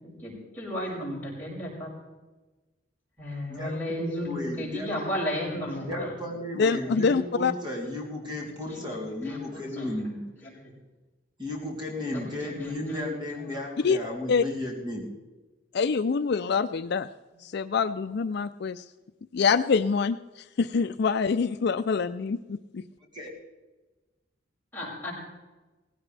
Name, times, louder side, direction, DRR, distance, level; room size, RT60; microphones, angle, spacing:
voice 1, 0.0-1.9 3.2-6.1 6.9-7.1 8.7-8.8 9.2-9.9 10.4-10.7 12.1-13.1 13.8-13.9 24.7-25.1, left 1 dB, 10° left, -6 dB, 6.4 m, -34 dB
voice 2, 3.5-4.9 5.8-10.2 11.4-15.1 23.1-23.3, left 1 dB, 25° right, -2 dB, 3.1 m, -34 dB
voice 3, 6.6-7.5 13.8-14.0 14.3-14.4 15.7-17.1 17.4-18.8 19.3-22.8, left 5 dB, 60° left, 11 dB, 0.4 m, -25 dB
18.0 x 16.0 x 3.3 m, 1.2 s
head